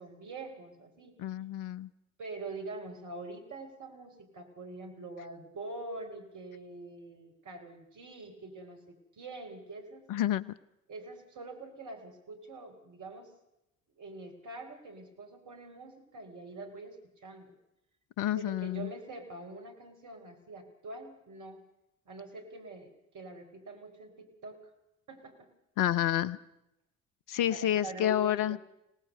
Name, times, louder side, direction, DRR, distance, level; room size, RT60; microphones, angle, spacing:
voice 1, 0.0-1.2 2.2-10.0 10.9-13.3 14.0-17.5 18.3-21.6 22.1-24.6 25.1-25.5 27.5-28.6, right 2 dB, 50° right, 4 dB, 4.1 m, -45 dB
voice 2, 1.2-1.9 10.1-10.5 18.2-18.9 25.8-26.4 27.3-28.6, left 12 dB, 55° left, 16 dB, 0.9 m, -29 dB
25.0 x 18.5 x 6.6 m, 0.87 s
figure-of-eight pair, 50°, 39 cm